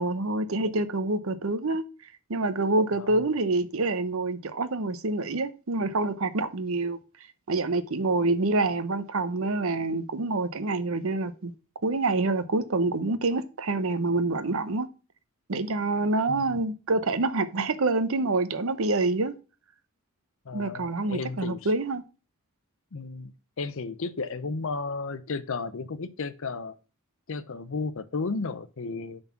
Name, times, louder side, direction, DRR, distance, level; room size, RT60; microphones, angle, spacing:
voice 1, 0.0-1.8 2.3-7.0 7.5-11.5 11.8-14.9 15.5-19.3 20.5-22.0, right 2 dB, 65° right, 0.7 m, -27 dB
voice 2, 2.9-3.2 16.3-16.6 20.4-21.7 22.9-23.3 23.6-26.8 27.3-29.2, left 4 dB, 60° left, 0.6 m, -33 dB
7.1 x 4.0 x 5.8 m
head